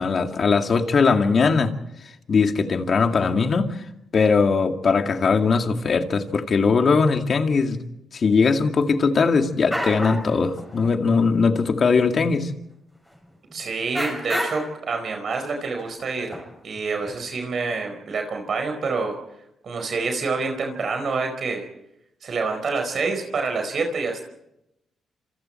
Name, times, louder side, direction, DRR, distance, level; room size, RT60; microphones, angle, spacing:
voice 1, 0.0-1.7 2.3-3.8 4.1-7.8 8.1-12.5, left 4 dB, 55° left, 5 dB, 2.2 m, -20 dB
sound 1, 9.3-9.4 9.7-10.3 10.6-11.0 11.7-11.8 12.2-12.3 13.5-13.6 13.9-14.8 15.8-15.9 16.3-17.1, equal, 5° left, 7.3 m, -30 dB
voice 2, 13.5-16.4 16.6-19.2 19.6-21.6 22.2-24.2, right 4 dB, 60° right, 4 dB, 4.6 m, -27 dB
27.0 x 27.0 x 4.5 m, 0.84 s
cardioid pair, 70°, 0 cm